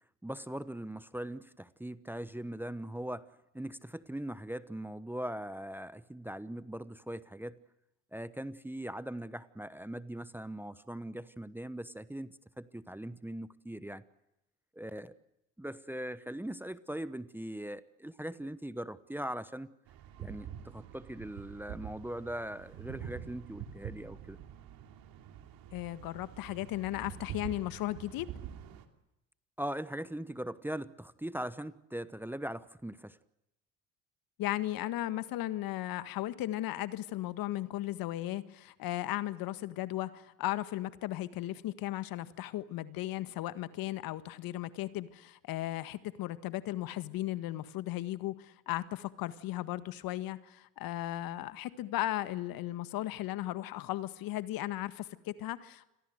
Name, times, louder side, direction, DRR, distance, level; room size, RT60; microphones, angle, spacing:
voice 1, 0.2-3.3 3.5-7.6 8.1-14.0 14.7-15.1 15.6-19.7 20.2-24.4 29.6-33.2, right 1 dB, 5° right, 15 dB, 1.0 m, -40 dB
sound 1, 19.9-28.8, right 9 dB, 60° right, 3.0 m, -46 dB
voice 2, 25.7-28.3 34.4-55.9, left 15 dB, 60° left, 13 dB, 1.7 m, -36 dB
28.5 x 22.5 x 8.0 m, 0.89 s
hypercardioid pair, 70°, 39 cm